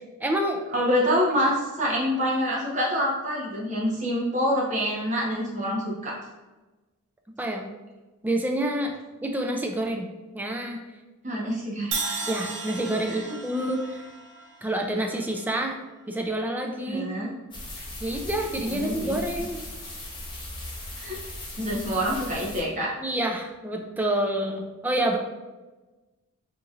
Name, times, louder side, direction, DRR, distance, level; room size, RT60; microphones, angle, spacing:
voice 1, 0.2-0.6 7.4-7.7 8.2-9.0 9.2-10.1 10.3-10.8 12.3-14.1 14.6-15.8 16.1-17.1 18.0-19.6 23.0-25.2, right 1 dB, 10° right, 2 dB, 0.3 m, -28 dB
voice 2, 0.7-6.2 11.2-12.0 13.1-13.2 16.9-17.3 18.7-19.2 21.0-21.2 21.6-23.0, equal, 35° right, -4 dB, 0.9 m, -26 dB
Crash cymbal, 11.9-15.9, right 4 dB, 55° right, 0.6 m, -35 dB
sound 1, 17.5-22.6, left 1 dB, 20° left, 0.7 m, -38 dB
3.9 x 2.9 x 2.4 m, 1.2 s
head